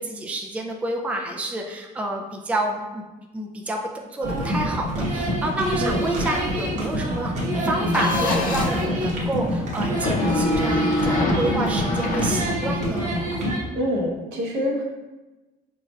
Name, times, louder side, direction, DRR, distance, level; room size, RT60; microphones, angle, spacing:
voice 1, 0.0-3.0 3.3-3.8 4.1-13.1, right 1 dB, 10° right, 1 dB, 0.4 m, -29 dB
sound 1, 4.2-13.6, equal, 45° right, 1.0 m, -26 dB
sound 2, 7.9-8.8 9.9-13.0, left 2 dB, 55° left, 0.7 m, -26 dB
voice 2, 13.7-14.8, equal, 85° right, -2 dB, 0.9 m, -25 dB
4.9 x 3.2 x 2.3 m, 1.1 s
cardioid pair, 110°, 17 cm